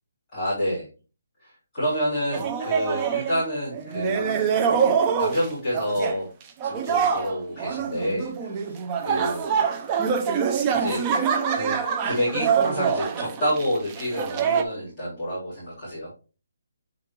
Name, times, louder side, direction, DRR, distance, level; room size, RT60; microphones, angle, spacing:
voice 1, 0.3-0.8 1.4-4.5 5.0-6.3 6.6-8.8 9.0-9.4 10.7-11.0 11.5-16.1, equal, 15° left, -13 dB, 4.0 m, -28 dB
sound 1, 2.3-3.4 3.7-5.5 5.7-6.2 6.6-14.6, right 6 dB, 15° right, 0.6 m, -25 dB
7.6 x 5.1 x 2.9 m, 0.35 s
hypercardioid pair, 170°, 0 cm